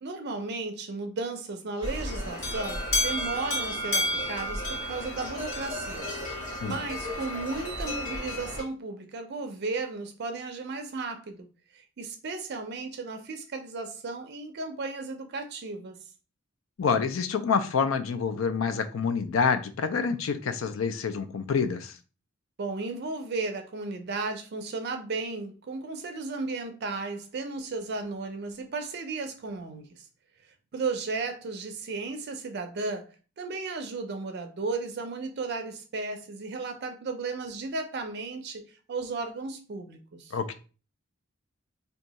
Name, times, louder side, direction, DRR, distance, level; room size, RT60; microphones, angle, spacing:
voice 1, 0.0-6.1 6.6-16.0 22.6-30.0 30.7-40.4, right 3 dB, 50° right, 0.4 m, -35 dB
sound 1, 1.8-8.6, left 1 dB, 40° left, 1.1 m, -32 dB
voice 2, 16.8-21.9 40.3-40.5, left 5 dB, 70° left, 0.4 m, -27 dB
2.7 x 2.3 x 3.9 m
head